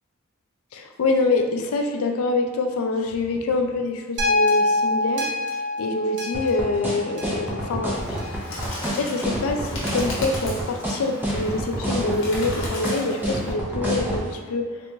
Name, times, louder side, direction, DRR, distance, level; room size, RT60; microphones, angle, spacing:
voice 1, 0.7-5.3 5.8-8.3 9.0-14.7, left 3 dB, 75° left, 4 dB, 0.4 m, -25 dB
sound 1, 4.2-8.5 9.2-9.3, left 2 dB, 55° right, 0.7 m, -25 dB
sound 2, 6.3-14.2, right 1 dB, 10° right, 0.5 m, -27 dB
Bird, 7.9-13.5, left 1 dB, 55° left, 0.8 m, -37 dB
3.3 x 3.0 x 2.6 m, 1.5 s
head